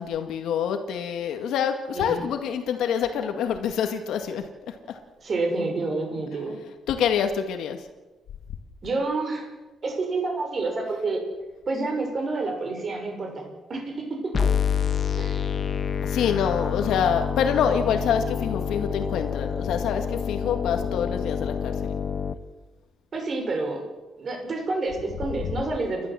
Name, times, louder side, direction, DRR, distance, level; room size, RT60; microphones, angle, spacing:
voice 1, 0.0-5.0 6.9-7.9 16.0-21.9, left 7 dB, 85° left, 6 dB, 2.0 m, -26 dB
voice 2, 1.9-2.3 5.2-6.6 8.8-9.5 9.8-11.2 11.7-13.9 14.2-14.5 15.2-15.4 23.1-23.9 24.2-26.1, right 3 dB, 35° right, 2 dB, 6.3 m, -28 dB
sound 1, 14.3-22.3, left 7 dB, 40° left, 1.3 m, -27 dB
29.5 x 12.5 x 7.7 m, 1.1 s
cardioid pair, 140°, 0 cm